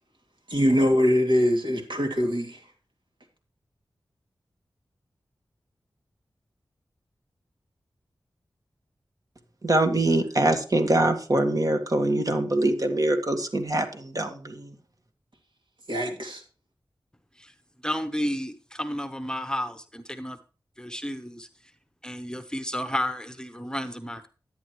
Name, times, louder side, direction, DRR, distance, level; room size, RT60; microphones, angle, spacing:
voice 1, 0.5-2.6 15.9-16.4, equal, 70° right, 2.5 m, -23 dB
voice 2, 9.6-14.7, right 1 dB, 45° right, 1.7 m, -24 dB
voice 3, 17.8-20.4 20.8-21.5 22.0-24.3, equal, 10° left, 1.0 m, -32 dB
11.0 x 9.4 x 3.1 m
cardioid pair, 45°, 8 cm